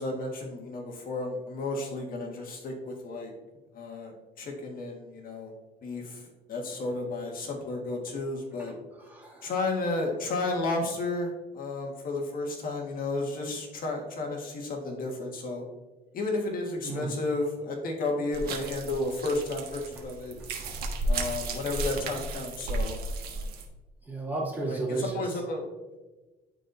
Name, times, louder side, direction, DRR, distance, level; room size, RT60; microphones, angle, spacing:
voice 1, 0.0-3.3 3.7-5.5 5.8-8.7 9.4-15.6 16.1-20.4 21.1-23.0 23.3-23.5 24.6-25.6, left 2 dB, 55° left, 1 dB, 1.5 m, -32 dB
voice 2, 8.9-9.5 16.8-17.1 24.1-25.2, right 3 dB, 10° right, -5 dB, 2.3 m, -33 dB
sound 1, 18.3-23.6, right 2 dB, 70° right, 1.4 m, -33 dB
12.5 x 4.1 x 2.6 m, 1.1 s
cardioid pair, 110°, 17 cm